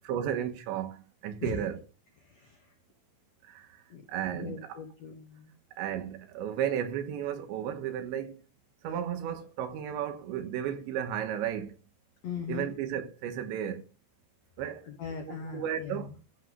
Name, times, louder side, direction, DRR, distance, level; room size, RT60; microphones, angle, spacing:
voice 1, 0.1-1.8 4.1-4.8 5.8-8.4 8.8-11.7 12.5-13.8 14.6-14.8 15.2-16.1, right 9 dB, 90° right, 3.5 m, -33 dB
voice 2, 2.2-2.7 3.9-4.0 4.3-5.6 12.2-12.7 14.9-16.1, left 6 dB, 85° left, 1.5 m, -40 dB
14.5 x 5.2 x 5.5 m
omnidirectional pair, 5.1 m